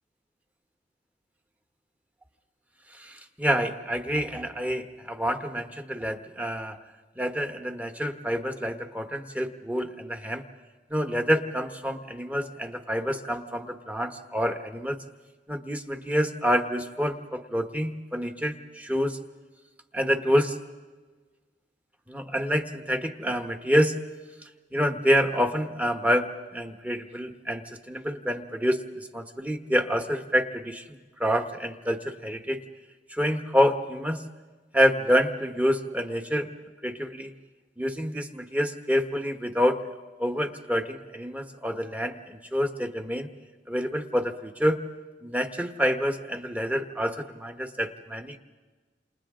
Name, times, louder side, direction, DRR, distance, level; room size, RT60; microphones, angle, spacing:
voice 1, 3.0-6.8 7.2-10.4 10.9-15.0 15.5-19.2 19.9-20.6 22.1-24.0 24.7-26.3 26.5-30.8 31.2-32.6 33.1-34.2 34.7-36.5 36.8-37.3 37.8-39.8 40.2-43.3 43.7-44.8 45.2-48.4, equal, 10° right, 6 dB, 1.3 m, -27 dB
28.5 x 28.5 x 3.8 m, 1.3 s
head